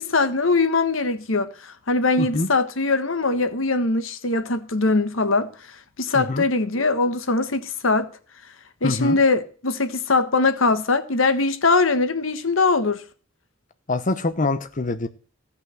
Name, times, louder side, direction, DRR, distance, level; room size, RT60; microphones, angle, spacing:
voice 1, 0.0-5.5 6.0-8.1 8.8-13.0, left 3 dB, 85° left, 1.4 m, -21 dB
voice 2, 2.2-2.5 6.1-6.4 8.8-9.2 13.9-15.1, left 2 dB, 40° left, 0.8 m, -24 dB
15.5 x 5.8 x 7.7 m
head